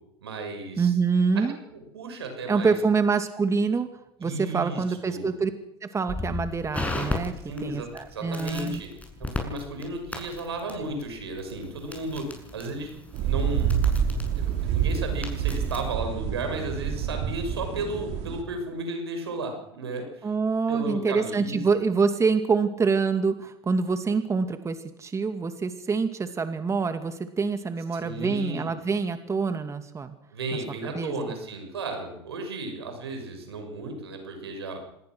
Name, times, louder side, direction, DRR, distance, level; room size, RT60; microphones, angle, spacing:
voice 1, 0.2-0.9 1.5-2.7 4.2-5.3 7.4-8.9 9.2-12.9 13.2-13.7 14.4-20.3 20.7-21.6 28.0-28.8 30.3-34.8, right 2 dB, 90° right, 5 dB, 6.5 m, -34 dB
voice 2, 0.8-1.6 2.5-3.9 4.2-5.5 5.8-7.3 7.6-8.8 10.7-10.8 20.2-30.1 30.9-31.1, right 5 dB, 20° right, 8 dB, 2.3 m, -26 dB
Crackle, 6.1-15.9, left 3 dB, 10° left, 7.3 m, -37 dB
sound 1, 13.1-18.4, right 8 dB, 60° right, 3.5 m, -27 dB
26.0 x 20.0 x 6.2 m, 0.81 s
hypercardioid pair, 85°, 13 cm